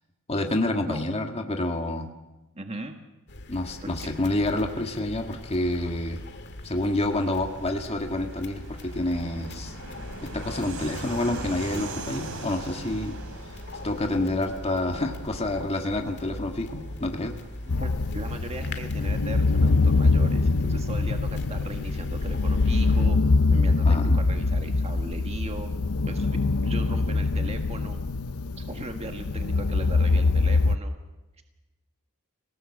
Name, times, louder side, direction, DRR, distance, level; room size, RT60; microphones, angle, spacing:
voice 1, 0.3-2.1 3.5-6.2 6.6-9.7 10.2-13.2 13.8-17.4 23.8-24.2, left 1 dB, 30° left, 3 dB, 1.8 m, -28 dB
voice 2, 2.5-3.0 3.8-4.1 14.1-14.3 17.7-23.2 23.5-25.7 26.0-26.3 26.6-28.0 28.6-30.9, right 2 dB, 30° right, 5 dB, 1.7 m, -38 dB
sound 1, 3.3-23.1, left 1 dB, 55° left, 1.8 m, -42 dB
Fixed-wing aircraft airplane, 5.6-21.8, right 2 dB, 75° right, 3.2 m, -43 dB
sound 2, 17.7-30.8, left 3 dB, 90° left, 0.8 m, -23 dB
27.0 x 18.5 x 7.3 m, 1.0 s
head